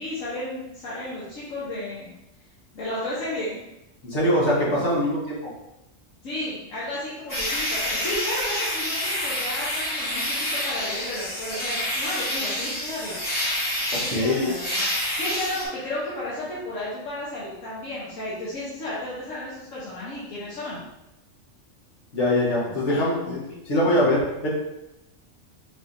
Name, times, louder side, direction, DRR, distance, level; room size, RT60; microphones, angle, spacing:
voice 1, 0.0-2.1 2.7-3.6 6.2-13.2 13.9-20.8 22.9-23.6, left 1 dB, 80° left, -8 dB, 1.4 m, -33 dB
voice 2, 4.0-5.5 14.1-14.5 22.1-23.4 23.6-24.5, left 1 dB, 65° left, -6 dB, 1.7 m, -22 dB
sound 1, 7.3-15.7, left 1 dB, 15° left, 1.3 m, -28 dB
4.4 x 4.0 x 2.6 m, 0.88 s
omnidirectional pair, 1.3 m